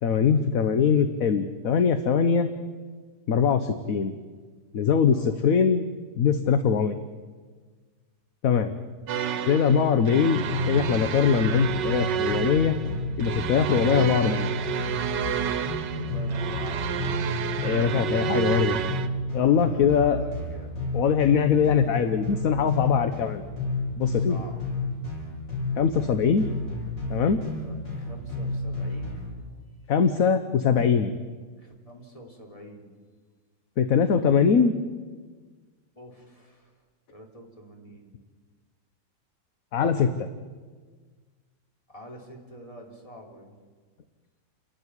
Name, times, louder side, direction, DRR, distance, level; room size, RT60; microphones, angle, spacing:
voice 1, 0.0-2.5 3.3-4.1 4.7-5.8 6.2-7.0 8.4-8.7 9.5-12.7 13.2-14.5 17.6-18.8 19.3-20.2 20.9-23.4 24.0-24.4 25.8-26.5 27.1-27.4 29.9-31.1 33.8-34.7 39.7-40.3, left 6 dB, 55° left, 10 dB, 1.3 m, -22 dB
sound 1, 9.1-19.1, right 8 dB, 85° right, 1.7 m, -30 dB
sound 2, 10.5-29.3, left 2 dB, 85° left, 6.9 m, -32 dB
voice 2, 15.9-17.3 19.3-20.9 24.1-24.6 27.6-29.3 31.6-32.9 36.0-36.7 37.1-38.1 41.9-43.5, equal, 20° left, 0 dB, 3.5 m, -46 dB
29.5 x 12.0 x 9.8 m, 1.5 s
omnidirectional pair, 1.9 m